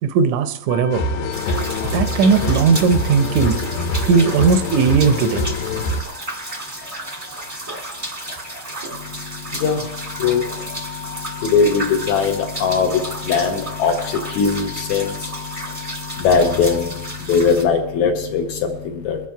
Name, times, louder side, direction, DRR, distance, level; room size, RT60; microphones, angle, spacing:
voice 1, 0.0-1.0 1.9-3.6 4.0-5.4, right 5 dB, 75° right, 10 dB, 1.7 m, -17 dB
sound 1, 0.7-17.1, left 8 dB, 55° left, 2.4 m, -39 dB
sound 2, 0.9-6.0, left 2 dB, 90° left, 2.7 m, -24 dB
sound 3, 1.3-17.6, right 1 dB, 20° right, 0.8 m, -32 dB
voice 2, 8.9-19.3, left 5 dB, 70° left, 4 dB, 2.0 m, -21 dB
22.5 x 7.5 x 4.6 m, 0.82 s
omnidirectional pair, 4.1 m